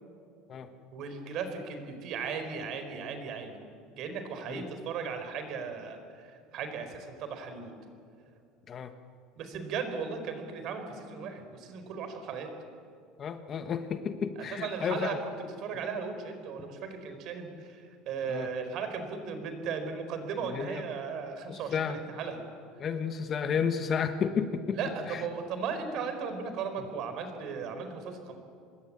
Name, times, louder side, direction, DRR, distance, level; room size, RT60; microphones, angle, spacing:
voice 1, 0.9-3.6 4.0-7.7 9.4-12.5 14.5-15.1 15.6-22.4 24.7-28.4, right 5 dB, 45° right, 7 dB, 4.2 m, -36 dB
voice 2, 13.2-15.2 18.3-18.5 20.4-20.8 21.5-22.0 22.8-24.8 25.1-25.2, left 7 dB, 30° left, 9 dB, 1.2 m, -32 dB
26.0 x 21.0 x 8.6 m, 2.4 s
cardioid pair, 155°, 0 cm